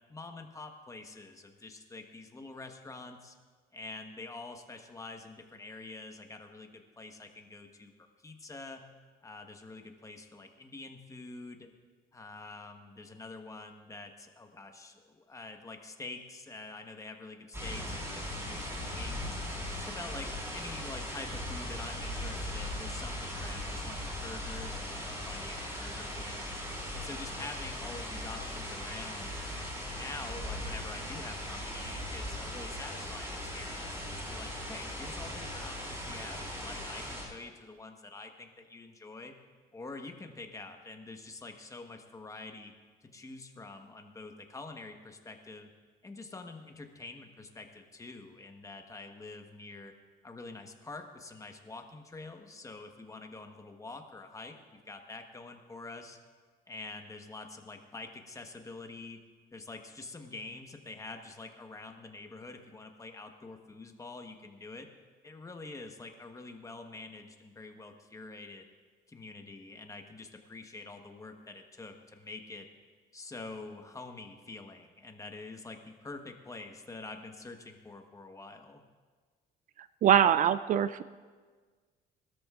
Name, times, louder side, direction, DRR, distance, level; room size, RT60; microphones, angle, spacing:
voice 1, 0.1-3.3 3.7-7.9 8.2-8.9 9.2-11.7 12.1-19.4 19.7-26.5 26.9-29.4 29.9-39.4 39.7-42.7 43.0-45.7 46.0-49.9 50.2-56.2 56.7-59.2 59.5-64.9 65.2-68.7 69.1-72.7 73.1-78.8, left 3 dB, 20° left, 4 dB, 1.2 m, -46 dB
sound 1, 17.5-37.2, left 1 dB, 15° right, 4.1 m, -39 dB
voice 2, 80.0-81.0, right 9 dB, 50° right, 14 dB, 0.4 m, -23 dB
20.5 x 13.0 x 2.5 m, 1.5 s
cardioid pair, 110°, 17 cm